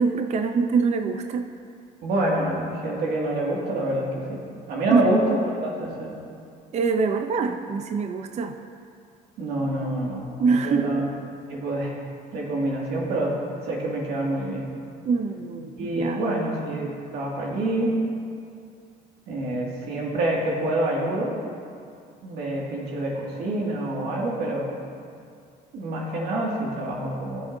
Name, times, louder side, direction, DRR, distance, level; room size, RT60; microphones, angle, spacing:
voice 1, 0.0-1.5 4.9-5.1 6.7-8.6 10.4-10.9 15.0-16.2, right 5 dB, 40° right, 6 dB, 0.5 m, -24 dB
voice 2, 2.0-4.4 4.7-6.1 9.4-11.1 11.5-11.9 12.3-13.3 13.6-14.7 15.8-18.0 19.3-21.3 22.2-24.7 25.7-27.6, right 1 dB, 75° right, -3 dB, 2.1 m, -27 dB
15.5 x 7.1 x 2.6 m, 2.3 s
cardioid pair, 110°, 17 cm